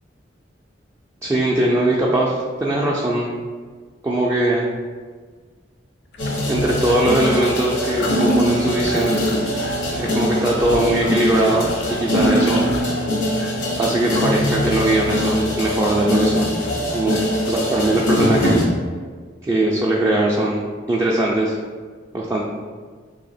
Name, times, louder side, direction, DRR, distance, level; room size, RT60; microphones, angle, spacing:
voice 1, 1.2-3.3 4.0-4.7 6.5-9.2 9.9-12.7 13.8-16.5 16.9-17.2 17.5-18.7 19.4-21.5 22.1-22.4, right 1 dB, 15° right, -4 dB, 0.3 m, -20 dB
sound 1, 6.1-7.7 8.0-12.8, left 2 dB, 60° left, 0.5 m, -32 dB
sound 2, 6.2-18.6, equal, 75° left, 0.9 m, -22 dB
2.9 x 2.8 x 4.0 m, 1.5 s
head